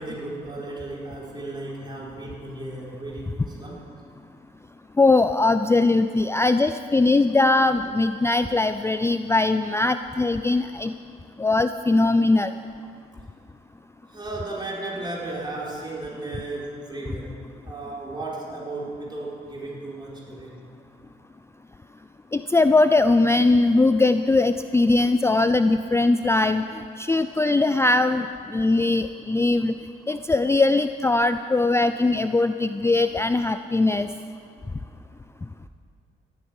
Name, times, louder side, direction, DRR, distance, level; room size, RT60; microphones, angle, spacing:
voice 1, 0.0-3.8 14.1-17.4 17.6-20.6, right 2 dB, 20° right, -4 dB, 4.4 m, -35 dB
voice 2, 5.0-10.9 11.4-12.5 22.3-26.7 27.0-29.7 30.1-34.1, left 2 dB, 15° left, 10 dB, 0.4 m, -20 dB
14.5 x 9.7 x 9.5 m, 2.2 s
cardioid pair, 90°, 20 cm